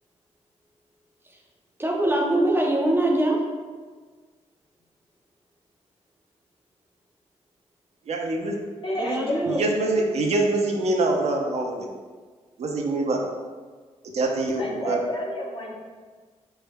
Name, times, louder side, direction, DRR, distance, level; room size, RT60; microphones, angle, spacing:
voice 1, 1.8-3.4 9.0-9.6, right 1 dB, 20° right, -1 dB, 0.6 m, -23 dB
voice 2, 8.1-8.6 9.5-11.9 12.6-13.2 14.1-15.0, right 2 dB, 60° right, 1 dB, 0.5 m, -24 dB
voice 3, 8.8-9.6 14.6-15.8, left 1 dB, 45° left, -3 dB, 0.8 m, -30 dB
3.4 x 3.0 x 2.2 m, 1.5 s
cardioid pair, 60°, 12 cm